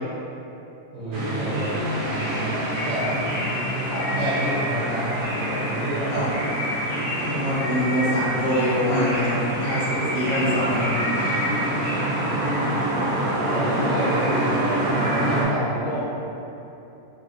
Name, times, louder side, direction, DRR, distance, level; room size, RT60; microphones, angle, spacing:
voice 1, 0.9-1.7 2.3-3.1 3.9-5.1 5.4-6.2 9.7-10.2 12.0-12.7 13.5-16.0, right 1 dB, 50° right, -12 dB, 0.5 m, -30 dB
sound 1, 1.1-15.4, right 1 dB, 80° right, 1.2 m, -26 dB
voice 2, 7.2-9.8 10.1-11.5, equal, 75° left, -8 dB, 1.4 m, -24 dB
4.7 x 2.1 x 2.4 m, 2.9 s
omnidirectional pair, 1.5 m